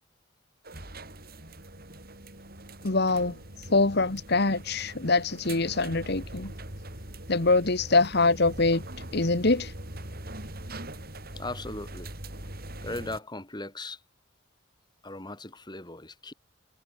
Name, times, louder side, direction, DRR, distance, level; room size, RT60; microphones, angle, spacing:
sound 1, 0.6-13.2, right 1 dB, 50° right, 7.4 m, -42 dB
voice 1, 2.8-6.5 7.3-8.8 9.1-9.7, left 3 dB, 50° left, 1.5 m, -24 dB
voice 2, 11.3-12.1 12.8-14.0 15.0-16.3, left 2 dB, 20° left, 3.5 m, -38 dB
head